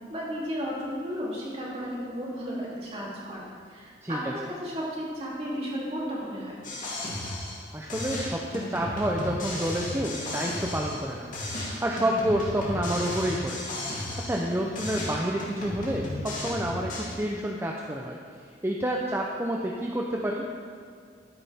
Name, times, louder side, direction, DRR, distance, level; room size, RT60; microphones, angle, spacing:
voice 1, 0.1-6.6, equal, 35° right, -6 dB, 3.0 m, -34 dB
voice 2, 4.0-4.3 7.7-11.3 11.8-13.6 14.2-18.2 18.6-20.5, right 1 dB, 15° right, -1 dB, 0.6 m, -29 dB
sound 1, 6.6-7.6 7.9-11.1 11.3-14.5 14.8-17.1, left 1 dB, 50° left, 2.6 m, -34 dB
13.5 x 9.7 x 3.6 m, 2.3 s
head